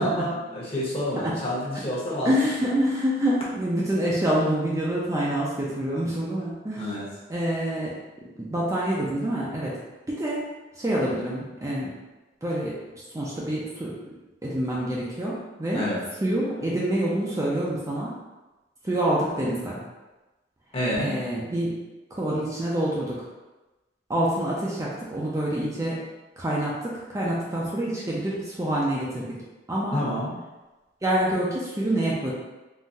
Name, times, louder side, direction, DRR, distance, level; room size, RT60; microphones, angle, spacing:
voice 1, 0.0-2.3 6.7-7.1 15.7-16.0 20.7-21.2 29.9-30.3, equal, 35° left, -7 dB, 0.9 m, -28 dB
voice 2, 2.2-6.9 7.3-7.9 8.4-9.8 10.1-10.4 10.8-11.9 12.4-12.8 13.1-14.0 14.4-15.9 16.2-18.1 18.8-19.8 21.0-21.8 22.1-23.2 24.1-26.0 26.4-29.4 29.7-30.0 31.0-32.3, right 1 dB, 20° right, -5 dB, 0.4 m, -26 dB
3.7 x 2.1 x 2.6 m, 1.1 s
head